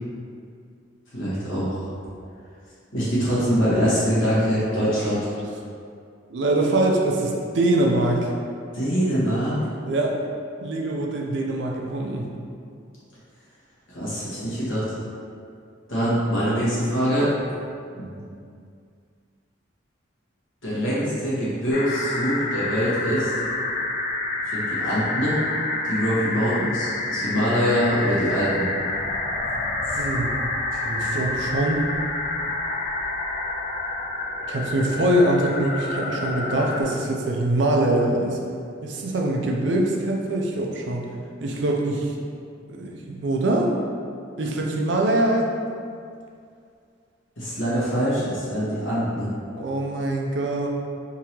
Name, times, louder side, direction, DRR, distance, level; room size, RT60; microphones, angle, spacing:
voice 1, 1.1-1.8 2.9-5.4 8.7-9.6 13.9-14.8 15.9-17.3 17.9-18.1 20.6-23.3 24.5-25.4 25.8-28.7 29.9-30.0 31.0-31.1 47.4-49.3, equal, 90° left, -10 dB, 1.3 m, -24 dB
voice 2, 6.3-8.3 9.9-10.2 10.6-12.3 29.9-30.4 30.8-31.9 34.5-38.4 38.8-41.0 41.4-42.1 42.7-43.7 44.4-45.5 49.6-50.7, right 1 dB, 65° right, 0 dB, 0.5 m, -23 dB
sound 1, 21.7-36.8, left 2 dB, 45° left, 0.3 m, -28 dB
3.6 x 2.8 x 2.9 m, 2.3 s
head